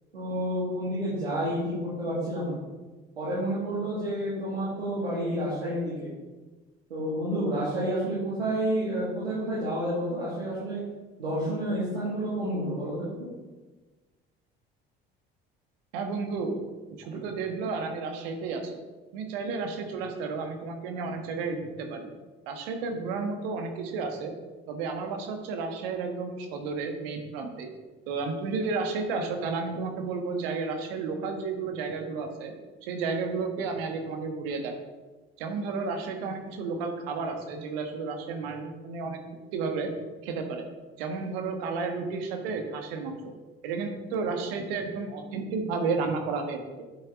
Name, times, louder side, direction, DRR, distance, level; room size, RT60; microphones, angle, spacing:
voice 1, 0.1-2.6 3.2-5.9 6.9-10.8 11.2-13.3, right 1 dB, 90° right, -9 dB, 2.3 m, -29 dB
voice 2, 15.9-16.6 17.0-18.8 19.1-22.1 22.5-24.3 24.7-27.7 28.1-32.5 32.8-34.7 35.4-39.2 39.5-39.9 40.2-40.6 41.0-43.2 43.6-46.8, right 4 dB, 70° right, 4 dB, 1.5 m, -32 dB
9.4 x 8.2 x 3.7 m, 1.2 s
figure-of-eight pair, 55°, 30 cm